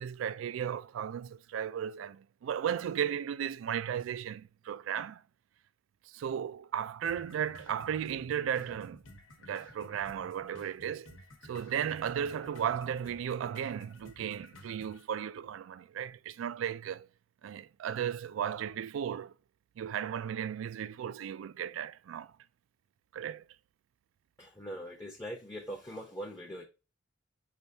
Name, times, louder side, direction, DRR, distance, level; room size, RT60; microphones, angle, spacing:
voice 1, 0.0-5.2 6.1-9.0 9.5-11.2 11.4-17.1 17.4-19.3 19.8-22.3 23.1-23.5, right 8 dB, 85° right, 0.3 m, -35 dB
sound 1, 7.1-15.1, equal, 90° left, 1.0 m, -53 dB
voice 2, 24.4-26.6, equal, 15° left, 0.6 m, -42 dB
5.3 x 3.4 x 2.7 m
head